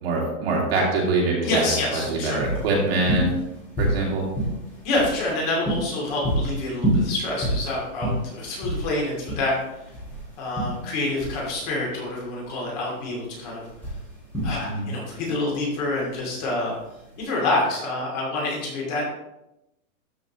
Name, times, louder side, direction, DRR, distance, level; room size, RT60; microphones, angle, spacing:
voice 1, 0.0-3.3 3.8-4.3 14.6-14.9, right 2 dB, 45° right, -2 dB, 2.1 m, -24 dB
voice 2, 1.4-2.4 4.4-4.5 4.8-9.6 10.4-13.6 14.4-16.7 17.2-19.0, left 2 dB, 30° left, -3 dB, 2.5 m, -27 dB
sound 1, 1.6-17.2, right 1 dB, 5° left, 1.7 m, -29 dB
12.5 x 5.3 x 3.0 m, 0.89 s
hypercardioid pair, 175°, 44 cm